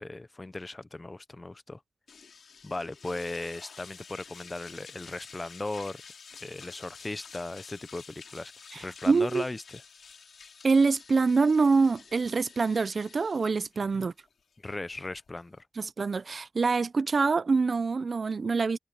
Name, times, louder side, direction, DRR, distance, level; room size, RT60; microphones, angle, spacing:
voice 1, 0.0-1.8 2.6-6.0 6.4-9.8 13.9-14.1 14.6-15.6, left 2 dB, 25° left, 0.7 m, -37 dB
sound 1, 2.1-15.6, left 6 dB, 85° left, 2.7 m, -50 dB
voice 2, 8.7-9.4 10.6-14.1 15.8-18.8, right 4 dB, 50° right, 0.5 m, -25 dB
wide cardioid pair, 115°, 0 cm